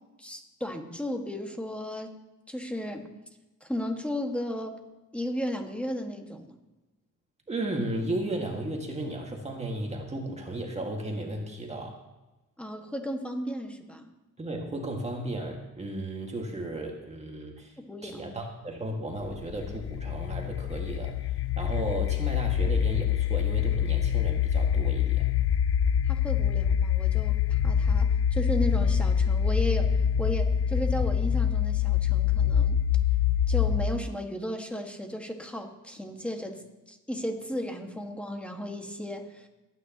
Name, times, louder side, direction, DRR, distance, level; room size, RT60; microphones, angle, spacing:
voice 1, 0.2-2.1 2.5-3.1 3.6-4.8 5.1-6.6 12.6-14.1 17.8-18.4 26.1-32.8 33.5-36.6 36.9-39.5, left 1 dB, 5° left, 3 dB, 1.8 m, -35 dB
voice 2, 7.5-12.0 14.4-17.7 18.0-21.2 21.6-25.3, right 1 dB, 20° right, 1 dB, 2.0 m, -34 dB
sound 1, 19.2-34.1, left 8 dB, 50° left, 0.4 m, -25 dB
22.5 x 9.6 x 3.0 m, 1.1 s
cardioid pair, 90°, 30 cm